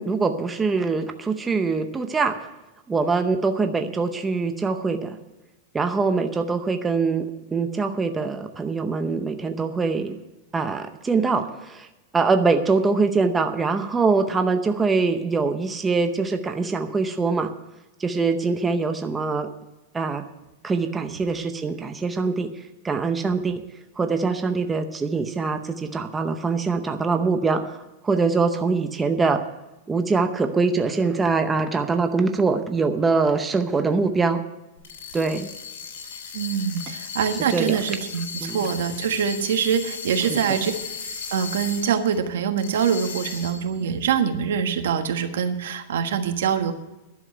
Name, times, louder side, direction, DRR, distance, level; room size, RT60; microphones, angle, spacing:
voice 1, 0.0-2.5 2.9-5.2 5.7-10.2 10.5-11.9 12.1-17.5 18.0-19.5 19.9-20.2 20.6-23.6 24.0-29.4 29.9-34.4 35.1-35.5 37.5-37.8 38.4-38.6 40.3-40.4, right 4 dB, 10° right, 6 dB, 0.7 m, -23 dB
sound 1, 34.8-42.2 42.6-43.8, left 5 dB, 80° left, 3.3 m, -36 dB
voice 2, 36.3-40.7 41.3-46.7, right 7 dB, 80° right, 7 dB, 1.4 m, -24 dB
11.0 x 7.1 x 9.5 m, 1.0 s
supercardioid pair, 155°, 0 cm